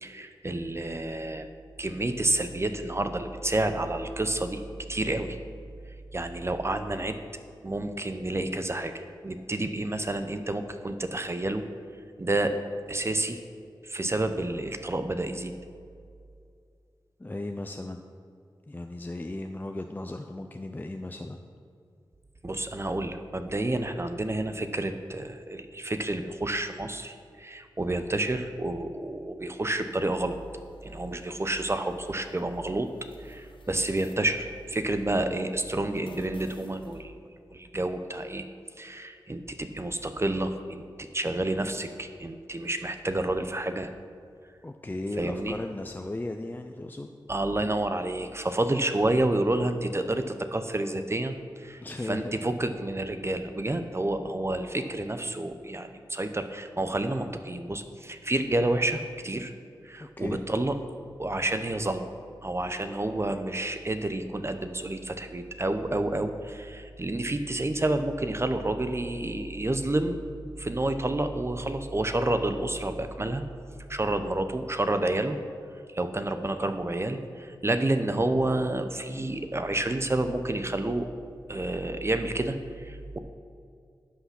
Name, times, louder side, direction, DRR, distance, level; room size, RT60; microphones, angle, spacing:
voice 1, 0.0-1.5 1.8-4.6 4.9-5.4 6.1-7.2 7.6-11.6 12.2-12.5 12.9-13.4 13.8-15.5 22.4-30.4 30.8-32.9 33.2-37.2 37.5-38.4 38.8-40.8 41.1-43.9 45.2-45.6 47.3-59.5 59.8-60.8 61.2-62.1 62.4-70.3 70.6-73.4 73.9-75.4 75.9-81.0 81.5-83.2, right 2 dB, 30° right, 8 dB, 0.7 m, -29 dB
voice 2, 17.2-18.0 18.7-21.4 44.6-47.1 51.8-52.4 59.9-60.4, left 2 dB, 20° left, 5 dB, 0.5 m, -36 dB
sound 1, 29.9-37.0, equal, 85° left, 0.9 m, -50 dB
11.0 x 5.8 x 5.9 m, 2.4 s
cardioid pair, 45°, 9 cm